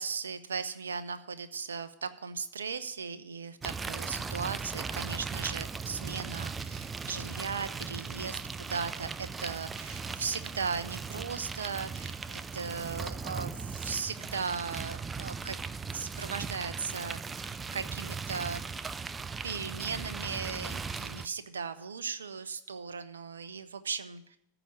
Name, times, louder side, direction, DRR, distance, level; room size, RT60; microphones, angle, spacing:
voice 1, 0.0-15.6 15.9-18.9 19.4-24.4, right 5 dB, 70° right, 12 dB, 0.6 m, -37 dB
sound 1, 3.6-21.3, right 5 dB, 15° right, 0.4 m, -38 dB
14.5 x 5.0 x 8.1 m, 0.72 s
figure-of-eight pair, 90°, 0 cm